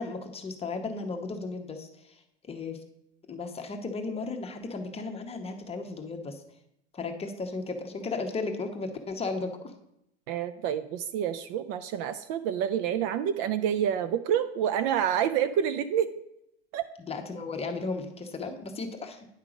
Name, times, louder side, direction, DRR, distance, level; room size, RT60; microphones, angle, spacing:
voice 1, 0.0-2.8 3.3-6.4 6.9-9.7 17.0-19.3, left 3 dB, 15° left, 4 dB, 0.9 m, -35 dB
voice 2, 10.3-16.1 16.7-16.8, right 9 dB, 45° right, 12 dB, 0.4 m, -28 dB
9.7 x 3.6 x 4.9 m, 0.79 s
hypercardioid pair, 110°, 34 cm